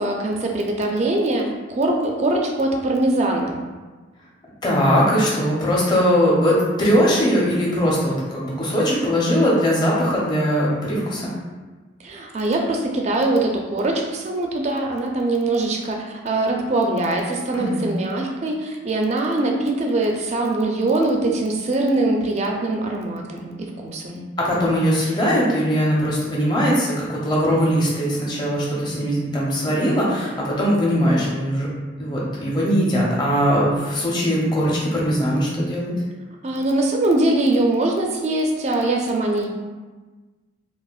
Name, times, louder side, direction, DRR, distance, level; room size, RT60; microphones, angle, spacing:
voice 1, 0.0-3.6 12.0-23.5 23.8-24.2 36.4-39.5, right 2 dB, 35° right, 1 dB, 0.4 m, -22 dB
voice 2, 4.6-11.3 17.5-17.9 24.4-31.7 32.0-35.9, equal, 20° left, -5 dB, 0.7 m, -20 dB
4.7 x 2.1 x 2.4 m, 1.3 s
head